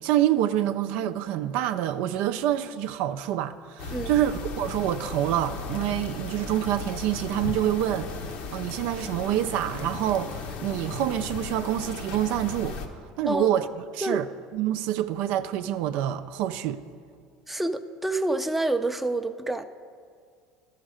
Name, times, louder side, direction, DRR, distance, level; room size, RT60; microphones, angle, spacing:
voice 1, 0.0-8.1 8.5-12.8 13.2-13.7 13.9-14.3 14.5-16.8, right 12 dB, 70° right, 0.4 m, -27 dB
sound 1, 3.8-12.9, left 3 dB, 70° left, 1.0 m, -37 dB
sound 2, 5.2-11.5, left 7 dB, 45° left, 0.4 m, -44 dB
voice 2, 17.5-19.6, right 2 dB, 5° right, 0.5 m, -27 dB
13.0 x 6.4 x 4.9 m
supercardioid pair, 90°, 3 cm